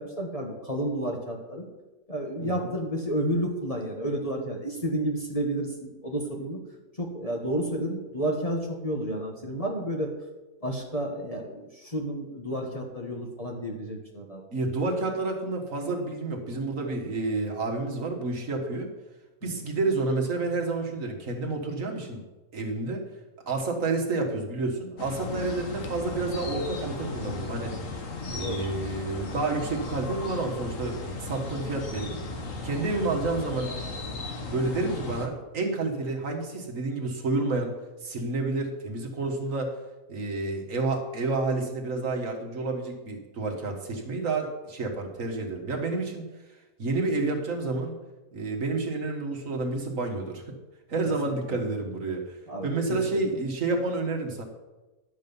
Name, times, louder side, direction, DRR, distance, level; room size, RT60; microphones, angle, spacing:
voice 1, 0.0-1.7 2.1-6.6 7.0-10.1 10.6-14.4 19.4-19.6 25.3-25.4 28.2-28.7 51.2-51.6 52.5-53.2, right 1 dB, 25° left, 0 dB, 1.4 m, -31 dB
voice 2, 14.5-18.9 19.4-22.2 22.5-23.0 23.5-27.8 28.3-32.2 32.6-33.7 34.5-37.7 38.0-39.7 40.1-46.2 46.8-48.0 48.3-50.6 50.9-54.4, right 3 dB, 60° right, 2 dB, 1.8 m, -29 dB
sound 1, 25.0-35.3, left 3 dB, 60° left, 1.6 m, -36 dB
11.0 x 7.6 x 5.4 m, 1.1 s
omnidirectional pair, 1.5 m